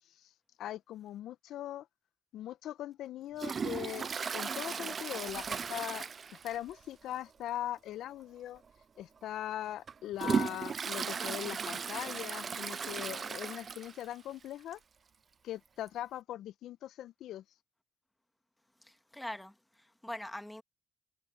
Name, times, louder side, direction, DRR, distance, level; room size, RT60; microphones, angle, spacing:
voice 1, 0.6-1.9 2.3-6.1 6.3-8.6 9.0-14.8 15.4-17.4, left 12 dB, 75° left, 1.3 m, -40 dB
Toilet flush, 3.4-6.8 7.1-7.2 7.6-7.7 8.6-8.7 9.2-14.1 14.5-14.6 14.7-14.8 15.9-16.0, right 6 dB, 50° right, 0.5 m, -36 dB
voice 2, 18.8-20.6, left 1 dB, 10° left, 2.1 m, -43 dB
hypercardioid pair, 40°, 0 cm